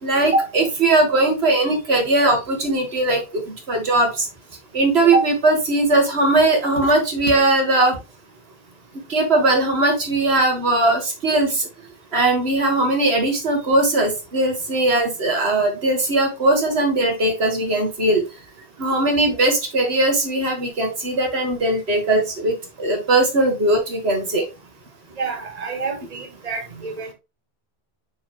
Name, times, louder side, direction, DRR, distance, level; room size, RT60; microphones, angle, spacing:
voice 1, 0.0-4.3 4.7-8.0 9.1-11.7 12.1-18.2 18.8-24.4, right 2 dB, 85° right, 2.0 m, -19 dB
voice 2, 25.2-27.1, right 4 dB, 40° right, 1.4 m, -29 dB
6.1 x 4.8 x 3.3 m
omnidirectional pair, 1.0 m